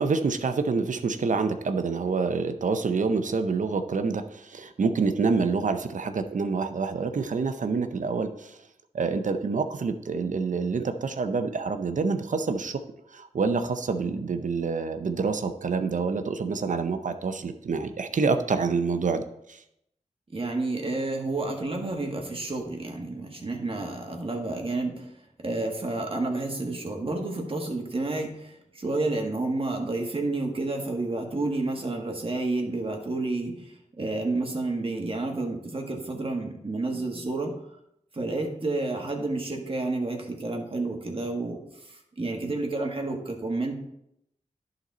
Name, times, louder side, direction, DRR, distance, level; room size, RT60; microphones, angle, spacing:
voice 1, 0.0-8.6 8.9-12.8 13.1-19.6, right 4 dB, 70° right, 8 dB, 0.6 m, -27 dB
voice 2, 20.3-25.1 25.4-37.5 38.1-43.7, right 2 dB, 45° right, 1 dB, 1.6 m, -30 dB
11.0 x 4.0 x 4.2 m, 0.79 s
cardioid pair, 50°, 13 cm